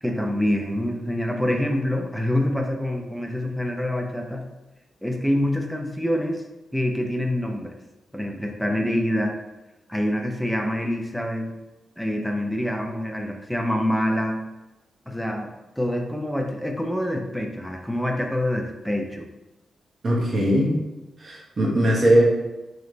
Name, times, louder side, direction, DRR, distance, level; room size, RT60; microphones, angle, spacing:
voice 1, 0.0-4.5 5.0-6.4 6.7-7.7 8.1-9.3 9.9-11.5 12.0-14.4 15.1-19.3, left 1 dB, ahead, 2 dB, 0.5 m, -26 dB
voice 2, 20.0-20.7 21.2-22.2, equal, 40° right, -3 dB, 1.1 m, -19 dB
3.3 x 3.0 x 3.9 m, 1.0 s
wide cardioid pair, 130°, 0 cm